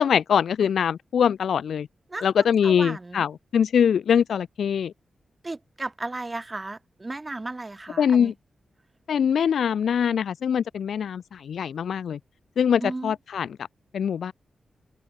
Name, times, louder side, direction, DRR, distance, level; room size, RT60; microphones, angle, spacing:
voice 1, 0.0-1.9 2.2-4.9 8.0-8.3 9.1-12.2 12.6-13.5 13.9-14.3, left 8 dB, 85° left, 0.8 m, -23 dB
voice 2, 2.6-3.2 5.4-8.3 12.8-13.1, right 2 dB, 25° right, 6.2 m, -34 dB
open air
cardioid pair, 90°, 0 cm